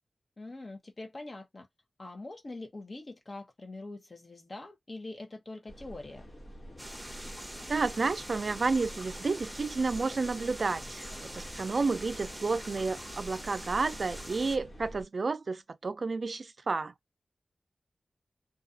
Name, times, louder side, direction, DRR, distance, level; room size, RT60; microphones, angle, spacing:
voice 1, 0.4-1.7 2.0-6.2, left 2 dB, 45° left, 0.8 m, -43 dB
sound 1, 5.7-15.0, equal, 70° left, 1.1 m, -47 dB
sound 2, 6.8-14.6, right 1 dB, 5° right, 0.8 m, -44 dB
voice 2, 7.7-16.9, right 4 dB, 60° right, 0.4 m, -31 dB
2.4 x 2.3 x 2.6 m
wide cardioid pair, 95°, 0 cm